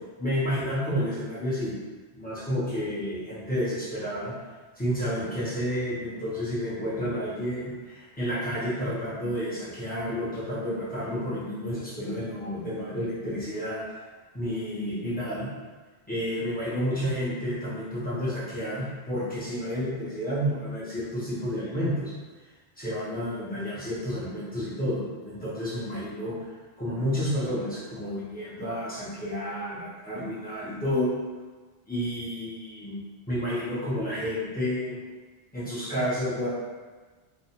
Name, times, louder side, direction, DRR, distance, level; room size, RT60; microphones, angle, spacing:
voice 1, 0.2-1.7 2.1-4.3 4.8-13.8 14.3-15.5 16.1-22.1 22.8-26.3 26.8-31.1 31.9-33.0 33.3-35.0 35.5-36.5, equal, 10° left, -11 dB, 0.7 m, -30 dB
2.4 x 2.3 x 2.8 m, 1.4 s
omnidirectional pair, 1.1 m